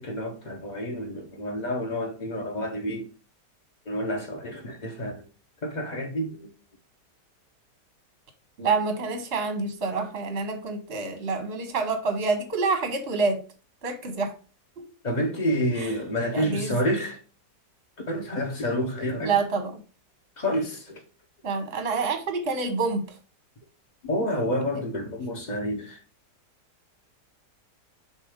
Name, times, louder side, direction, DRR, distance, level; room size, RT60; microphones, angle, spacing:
voice 1, 0.0-3.1 3.9-5.3 5.6-6.5 15.0-17.2 18.1-19.4 20.4-21.0 24.0-26.0, equal, 30° left, 1.1 m, -29 dB
voice 2, 8.6-13.4 13.8-14.3 14.8-14.9 15.8-15.9 16.3-16.7 19.2-19.7 21.4-23.0, right 4 dB, 45° right, 1.1 m, -27 dB
7.0 x 2.7 x 5.0 m
omnidirectional pair, 1.8 m